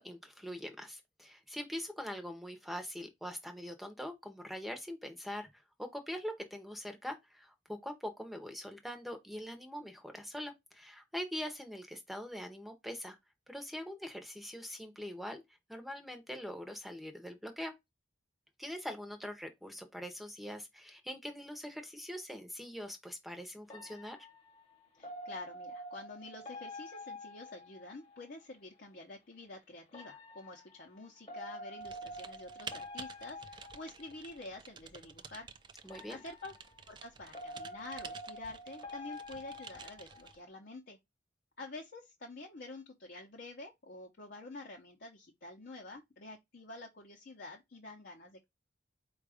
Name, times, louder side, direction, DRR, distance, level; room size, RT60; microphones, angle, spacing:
voice 1, 0.0-13.2 13.5-15.4 15.7-17.7 18.6-24.2 35.8-36.2, equal, ahead, 0.7 m, -43 dB
sound 1, 23.7-28.3 29.9-34.5 35.8-40.5, left 1 dB, 30° left, 1.0 m, -48 dB
voice 2, 25.0-35.5 36.1-36.5 36.9-41.0 41.6-48.4, left 2 dB, 50° left, 0.7 m, -48 dB
Typing, 31.8-40.4, right 6 dB, 25° right, 0.3 m, -51 dB
4.5 x 2.4 x 4.8 m
head